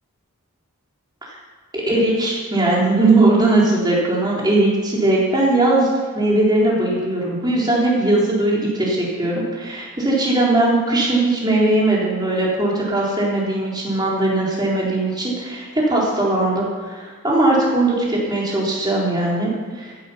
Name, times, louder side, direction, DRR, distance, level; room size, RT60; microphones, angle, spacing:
voice 1, 1.7-5.9 6.1-19.9, right 2 dB, 20° right, -5 dB, 4.0 m, -19 dB
15.0 x 11.0 x 5.8 m, 1.4 s
head